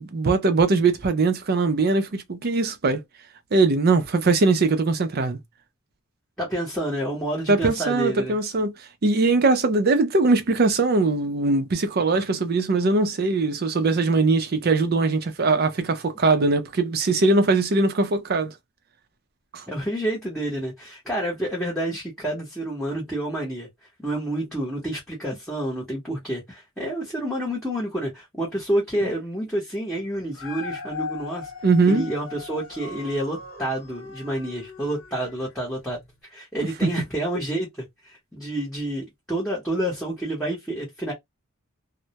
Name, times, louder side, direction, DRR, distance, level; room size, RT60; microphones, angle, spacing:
voice 1, 0.0-3.0 3.5-5.4 7.5-8.7 9.0-18.5 19.5-19.6 31.6-32.1 36.8-36.9, right 3 dB, 45° right, 0.5 m, -21 dB
voice 2, 6.4-8.3 19.7-23.7 24.0-31.5 31.9-36.0 36.3-41.1, right 1 dB, 5° left, 0.8 m, -29 dB
Dog, 30.2-35.5 36.0-36.1, left 4 dB, 65° left, 1.0 m, -38 dB
2.1 x 2.1 x 2.8 m
head